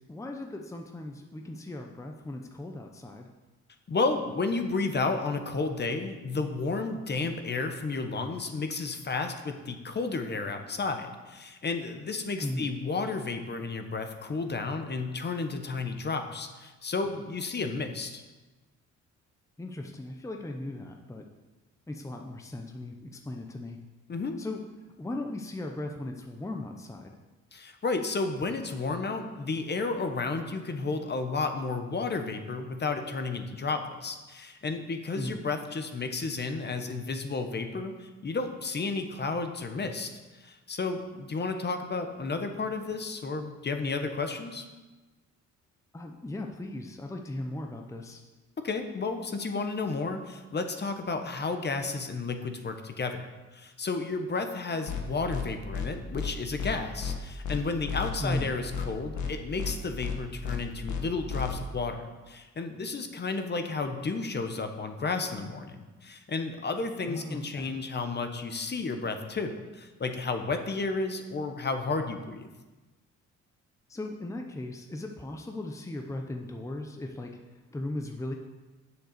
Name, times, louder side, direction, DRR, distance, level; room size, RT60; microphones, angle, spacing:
voice 1, 0.0-3.3 12.4-12.7 19.6-21.2 21.9-23.8 24.4-24.6 25.0-27.1 35.1-35.4 45.9-48.2 58.2-58.5 67.1-67.8 73.9-77.4 77.7-78.3, left 1 dB, 10° left, 3 dB, 0.8 m, -37 dB
voice 2, 3.9-18.2 24.1-24.4 27.5-40.1 40.4-44.7 48.6-53.3 53.5-72.5, left 3 dB, 35° left, 6 dB, 1.1 m, -32 dB
sound 1, 54.9-55.0 55.3-55.4 55.7-55.9 56.2-56.3 56.6-56.7 57.0-57.2 57.4-57.6 57.9-58.4 58.7-58.9 59.2-59.3 59.6-59.7 60.0-60.2 60.4-60.6 60.9-61.0 61.3-61.5, left 7 dB, 70° left, 1.4 m, -32 dB
7.7 x 6.6 x 6.7 m, 1.2 s
cardioid pair, 90°, 30 cm